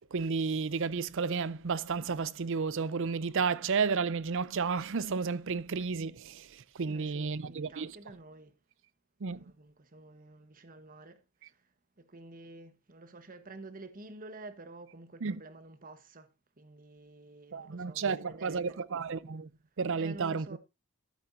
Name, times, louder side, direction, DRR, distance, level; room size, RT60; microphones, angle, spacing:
voice 1, 0.0-6.5 6.8-7.9 9.2-9.4 15.2-15.4 17.5-19.5 19.8-20.6, right 5 dB, 60° right, 0.5 m, -32 dB
voice 2, 6.8-8.6 9.3-18.8 19.9-20.6, right 2 dB, 40° right, 1.2 m, -50 dB
12.5 x 8.9 x 2.6 m
head